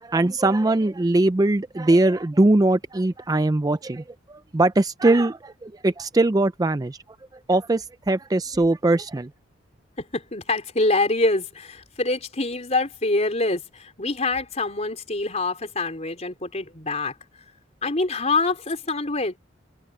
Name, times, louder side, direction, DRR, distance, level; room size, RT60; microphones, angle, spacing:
voice 1, 0.0-7.0 7.5-9.3, right 2 dB, 20° right, 0.4 m, -21 dB
voice 2, 10.0-17.1 17.8-19.4, left 2 dB, 35° left, 4.1 m, -25 dB
head